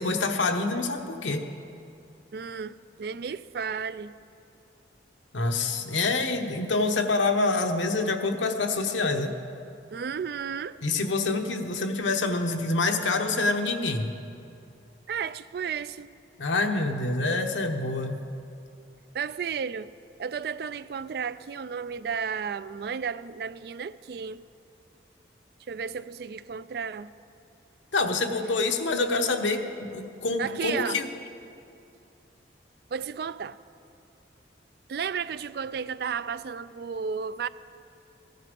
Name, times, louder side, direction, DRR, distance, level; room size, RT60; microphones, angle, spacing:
voice 1, 0.0-1.4 5.3-9.3 10.8-14.1 16.4-18.2 27.9-31.1, left 3 dB, 85° left, 1.0 m, -26 dB
voice 2, 2.3-4.1 9.9-10.8 15.1-16.1 19.1-19.9 20.2-24.4 25.7-27.1 30.4-31.0 32.9-33.6 34.9-37.5, right 6 dB, 55° right, 0.3 m, -33 dB
15.5 x 10.5 x 5.2 m
head